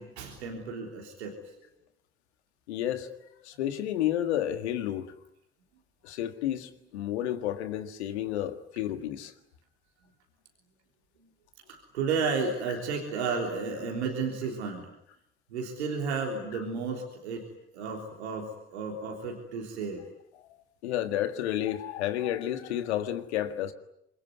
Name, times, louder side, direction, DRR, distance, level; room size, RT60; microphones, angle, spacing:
voice 1, 0.0-1.4 11.7-14.9 15.5-17.5 17.7-20.0, right 5 dB, 85° right, 3.6 m, -33 dB
voice 2, 2.7-5.1 6.0-9.3 16.5-16.6 20.3-20.5 20.8-23.7, left 12 dB, 85° left, 1.8 m, -31 dB
26.0 x 22.5 x 9.6 m
hypercardioid pair, 45°, 32 cm